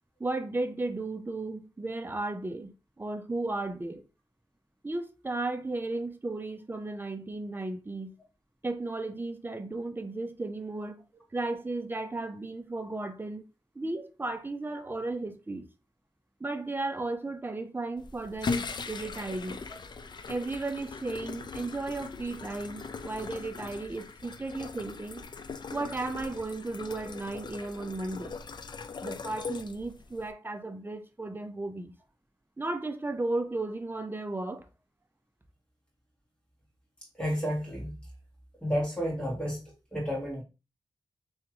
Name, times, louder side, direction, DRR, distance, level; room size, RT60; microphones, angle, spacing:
voice 1, 0.2-4.0 4.8-8.1 8.6-11.0 11.3-13.4 13.7-15.7 16.4-19.6 20.3-25.2 25.7-28.4 29.0-31.9 32.6-34.7, right 2 dB, 25° right, 0.6 m, -35 dB
sound 1, 18.0-30.3, left 4 dB, 55° left, 0.4 m, -40 dB
voice 2, 37.1-38.0 38.6-39.6 39.9-40.4, equal, 10° left, 2.5 m, -31 dB
3.6 x 3.5 x 3.0 m
wide cardioid pair, 80°, 9 cm